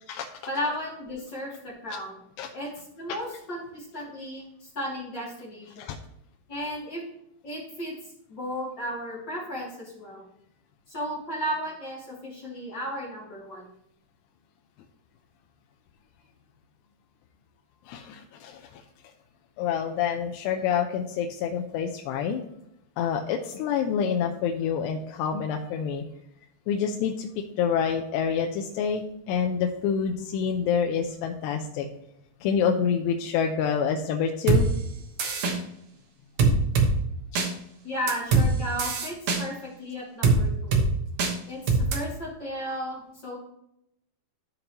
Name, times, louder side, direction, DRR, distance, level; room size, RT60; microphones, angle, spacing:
voice 1, 0.5-2.2 2.5-2.7 3.0-5.9 6.5-7.0 7.4-7.9 8.3-10.3 10.9-13.7 37.8-40.9 41.5-43.4, equal, 30° left, -6 dB, 2.4 m, -34 dB
voice 2, 17.9-18.8 19.6-22.4 23.0-26.0 26.7-27.3 27.6-31.9 32.4-34.7, left 7 dB, 85° left, 3 dB, 2.8 m, -27 dB
sound 1, 34.5-34.6 35.2-35.6 36.4-36.9 37.4-37.5 38.1-38.5 38.8-39.4 40.2-40.4 40.7-40.9 41.2-41.3 41.7-42.0, right 5 dB, 80° right, 1.4 m, -21 dB
13.0 x 5.3 x 2.9 m, 0.79 s
omnidirectional pair, 4.9 m